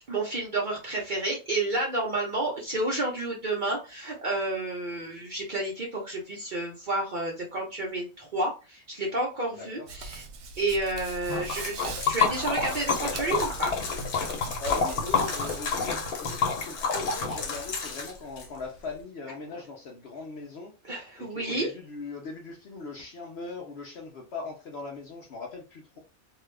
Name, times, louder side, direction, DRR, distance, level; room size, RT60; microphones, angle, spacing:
voice 1, 0.1-10.2 10.6-13.8 20.8-21.7, right 2 dB, 45° right, -2 dB, 0.7 m, -30 dB
Hands, 9.9-16.1, right 3 dB, 85° right, 1.1 m, -41 dB
Liquid, 11.3-18.5, left 5 dB, 90° left, 1.2 m, -29 dB
voice 2, 14.6-20.7 21.2-26.0, left 3 dB, 60° left, 1 dB, 0.7 m, -40 dB
2.8 x 2.3 x 3.2 m, 0.31 s
omnidirectional pair, 1.5 m